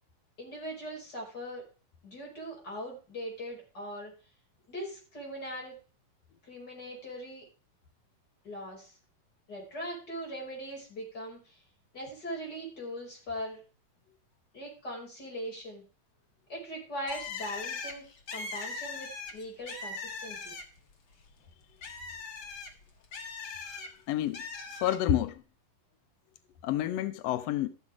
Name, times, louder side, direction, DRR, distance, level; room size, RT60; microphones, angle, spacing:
voice 1, 0.4-1.6 2.0-4.1 4.7-5.8 6.4-7.5 8.4-9.0 9.5-11.6 11.9-13.6 14.5-15.8 16.5-20.5, equal, 30° left, 5.9 m, -40 dB
Bird, 17.1-20.9 21.3-23.9 24.3-25.0, left 4 dB, 45° left, 2.1 m, -40 dB
voice 2, 23.6-24.4 24.7-25.4 26.6-27.7, left 11 dB, 85° left, 1.4 m, -30 dB
14.0 x 7.3 x 4.9 m
omnidirectional pair, 3.8 m